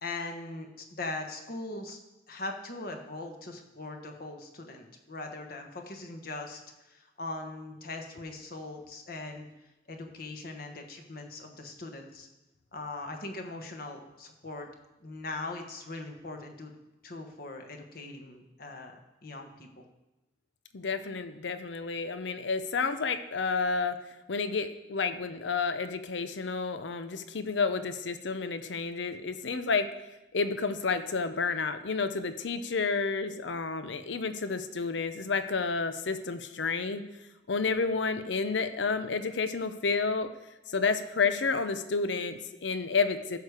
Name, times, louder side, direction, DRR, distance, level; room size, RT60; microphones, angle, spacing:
voice 1, 0.0-2.0 2.3-9.5 9.9-12.3 12.7-14.7 15.0-16.7 17.0-19.9, left 2 dB, 55° left, 3 dB, 1.3 m, -40 dB
voice 2, 20.7-24.0 24.3-29.9 30.3-37.0 37.5-40.3 40.7-43.4, left 4 dB, 90° left, 10 dB, 0.7 m, -30 dB
15.0 x 6.6 x 4.9 m, 1.0 s
head